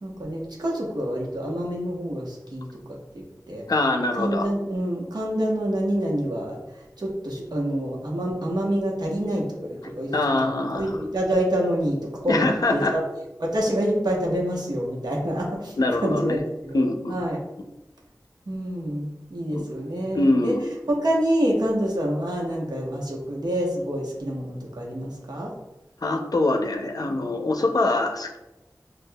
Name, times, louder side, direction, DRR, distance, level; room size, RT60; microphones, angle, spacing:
voice 1, 0.0-3.6 4.2-6.6 7.0-10.3 10.7-12.4 12.7-13.0 13.4-15.8 16.0-17.4 18.5-20.6 20.9-25.5, equal, 75° right, -2 dB, 1.0 m, -27 dB
voice 2, 3.7-4.5 10.1-10.9 12.3-13.0 15.8-16.4 16.7-17.2 19.5-19.6 20.1-20.6 26.0-28.4, left 2 dB, 65° left, 4 dB, 0.5 m, -23 dB
6.3 x 2.3 x 2.2 m, 1.0 s
wide cardioid pair, 60°, 7 cm